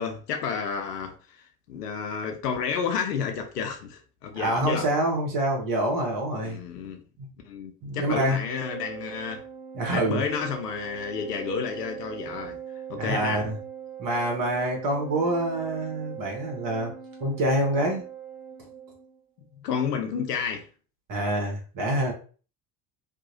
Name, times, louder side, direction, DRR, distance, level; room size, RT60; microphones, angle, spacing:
voice 1, 0.0-4.9 6.4-7.0 7.4-9.4 9.9-12.6 12.9-13.4 19.6-20.6, left 6 dB, 80° left, 0.6 m, -31 dB
voice 2, 4.4-6.6 7.8-8.4 9.7-10.2 13.0-13.5 14.0-16.9 17.2-18.0 21.1-22.1, right 1 dB, 45° right, 1.2 m, -26 dB
Organ, 8.4-19.2, right 8 dB, 5° right, 0.7 m, -41 dB
2.7 x 2.3 x 2.6 m
figure-of-eight pair, 60°, 47 cm